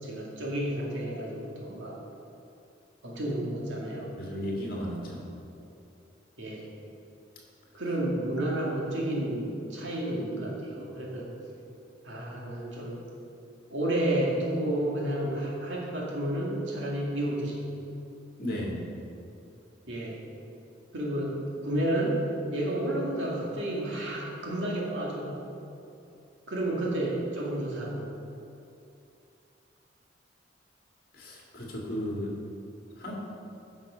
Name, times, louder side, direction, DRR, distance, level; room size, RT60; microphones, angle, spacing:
voice 1, 0.0-2.0 3.0-4.2 6.4-6.6 7.7-11.3 12.0-13.0 13.7-17.7 19.9-20.2 20.9-22.2 22.5-25.4 26.5-28.1, right 1 dB, 75° right, -3 dB, 2.0 m, -31 dB
voice 2, 4.2-5.2 18.4-18.8 31.1-32.3 32.9-33.1, equal, 50° left, -3 dB, 2.0 m, -34 dB
9.7 x 6.2 x 5.0 m, 2.7 s
head